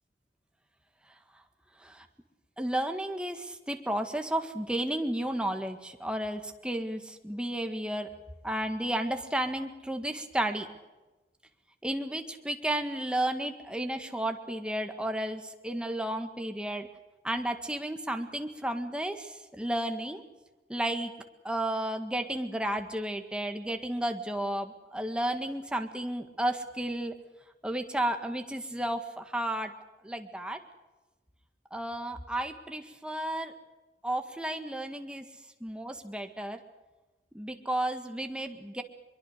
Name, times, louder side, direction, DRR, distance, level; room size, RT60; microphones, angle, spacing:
voice 1, 2.6-8.1 8.4-10.7 11.8-16.9 17.2-20.2 20.7-21.1 21.4-27.2 27.6-29.7 30.0-30.6 31.7-33.5 34.0-35.3 35.6-36.6 37.3-38.8, right 1 dB, 5° right, 5 dB, 1.8 m, -32 dB
23.0 x 23.0 x 6.6 m, 1.1 s
head